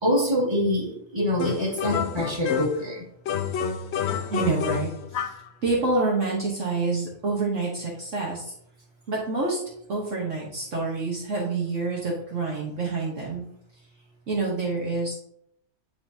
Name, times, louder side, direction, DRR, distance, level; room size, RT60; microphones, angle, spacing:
voice 1, 0.0-3.0, equal, 20° right, -5 dB, 2.0 m, -25 dB
sound 1, 1.4-2.9 3.3-5.5, left 7 dB, 65° left, 0.7 m, -29 dB
voice 2, 4.3-4.9 5.6-8.5 9.1-9.6 9.9-13.4 14.3-15.1, right 3 dB, 55° right, -3 dB, 1.4 m, -27 dB
10.0 x 3.6 x 2.7 m, 0.72 s
omnidirectional pair, 1.5 m